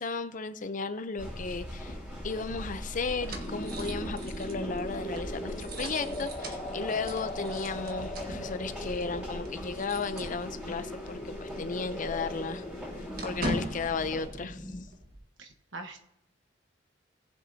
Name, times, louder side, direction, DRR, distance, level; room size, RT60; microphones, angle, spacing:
voice 1, 0.0-2.0 2.2-12.6 13.2-14.7, left 4 dB, 45° left, 11 dB, 0.6 m, -34 dB
sound 1, 1.2-14.3, equal, 5° right, 4.2 m, -42 dB
sound 2, 2.2-10.9 11.2-11.4 11.7-15.2, right 1 dB, 55° right, 1.4 m, -42 dB
sound 3, 3.3-14.8, left 1 dB, 25° left, 1.2 m, -40 dB
voice 2, 15.4-16.0, right 2 dB, 75° right, 4 dB, 1.2 m, -43 dB
18.5 x 7.3 x 2.8 m, 0.83 s
head